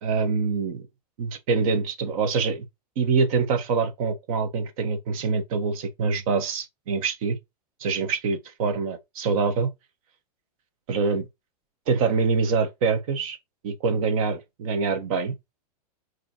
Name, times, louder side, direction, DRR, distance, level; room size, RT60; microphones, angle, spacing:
voice 1, 0.0-0.8 1.2-2.7 3.0-7.4 7.8-9.7 10.9-11.3 11.9-13.4 13.6-15.3, right 4 dB, 60° right, 1.3 m, -25 dB
4.8 x 3.1 x 3.0 m
hypercardioid pair, 110°, 21 cm